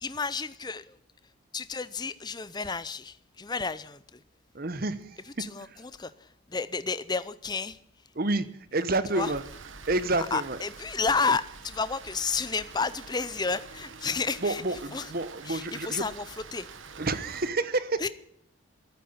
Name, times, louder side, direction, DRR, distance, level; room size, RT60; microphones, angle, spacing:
voice 1, 0.0-1.0 1.5-4.2 5.3-7.8 9.1-9.3 10.2-15.1 15.4-16.7 18.0-18.1, left 4 dB, 20° left, 0.6 m, -31 dB
voice 2, 4.5-5.2 8.2-8.4 8.7-9.4 9.9-10.6 14.4-16.0 17.0-18.0, right 2 dB, 45° right, 1.1 m, -29 dB
Rain, 9.2-17.5, right 5 dB, 70° right, 1.2 m, -46 dB
14.0 x 9.3 x 8.6 m
head